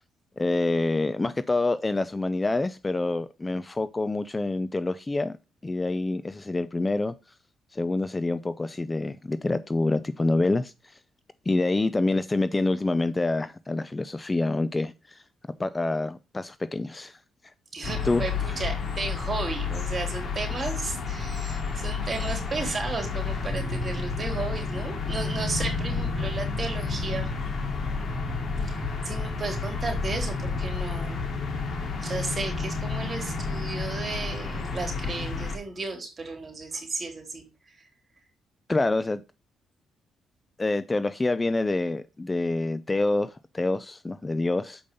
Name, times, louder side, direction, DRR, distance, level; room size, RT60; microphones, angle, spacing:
voice 1, 0.4-5.4 5.6-7.1 7.7-11.0 11.5-15.2 15.6-17.2 18.0-18.2 38.7-39.2 40.6-44.8, left 2 dB, 20° left, 0.4 m, -27 dB
voice 2, 17.7-27.3 28.6-31.2 32.0-37.7, right 3 dB, 35° right, 3.3 m, -34 dB
sound 1, 17.8-35.6, left 4 dB, 50° left, 2.5 m, -30 dB
6.9 x 5.2 x 5.3 m
cardioid pair, 90°, 0 cm